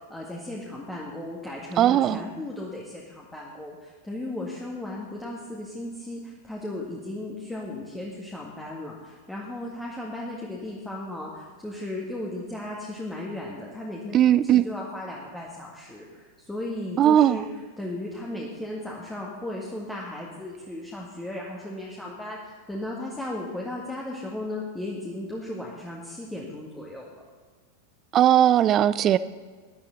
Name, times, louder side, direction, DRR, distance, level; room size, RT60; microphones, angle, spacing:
voice 1, 0.0-27.2, left 1 dB, 5° left, -3 dB, 2.0 m, -36 dB
voice 2, 1.8-2.2 14.1-14.7 17.0-17.4 28.1-29.2, right 11 dB, 30° right, 16 dB, 0.5 m, -18 dB
18.5 x 12.0 x 4.0 m, 1.5 s
figure-of-eight pair, 90°, 0 cm